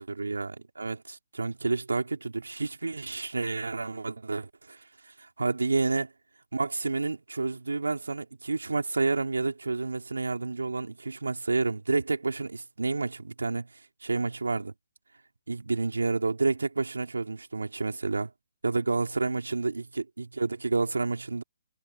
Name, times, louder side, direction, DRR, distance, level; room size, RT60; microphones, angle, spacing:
voice 1, 0.1-6.1 6.5-13.7 14.0-14.7 15.5-18.3 18.6-21.4, right 3 dB, 85° right, 4.2 m, -30 dB
figure-of-eight pair, 140°, 0 cm